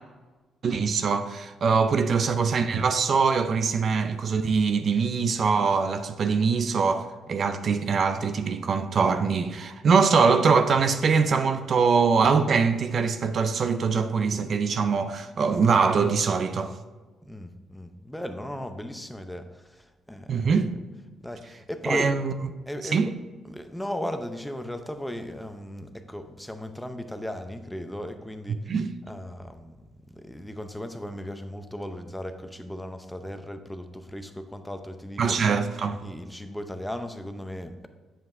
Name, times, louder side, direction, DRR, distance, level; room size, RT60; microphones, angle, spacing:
voice 1, 0.6-16.7 20.3-20.7 21.9-22.3 22.9-23.1 28.5-28.9 35.2-36.0, right 5 dB, 50° right, 0.5 m, -23 dB
voice 2, 17.2-20.5 21.2-22.2 22.7-23.1 23.4-28.7 29.1-35.4 36.0-37.9, left 1 dB, 5° left, 0.6 m, -36 dB
8.4 x 7.3 x 2.6 m
cardioid pair, 90°, 0 cm